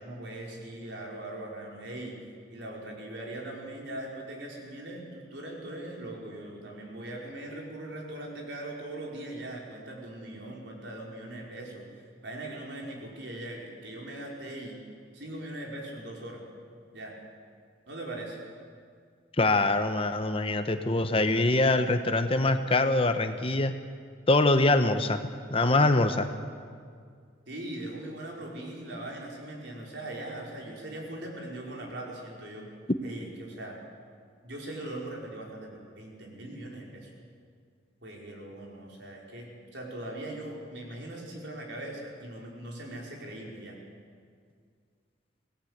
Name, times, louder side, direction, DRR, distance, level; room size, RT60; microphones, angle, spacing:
voice 1, 0.0-2.2 2.5-11.8 12.2-14.8 15.1-16.4 16.9-17.1 17.9-18.4 27.5-32.7 33.0-33.8 34.4-37.1 38.0-43.8, right 1 dB, 60° right, -1 dB, 5.1 m, -40 dB
voice 2, 19.4-23.7 24.3-25.2 25.5-26.3, left 2 dB, 30° left, 9 dB, 1.0 m, -24 dB
25.5 x 18.0 x 8.1 m, 2.1 s
head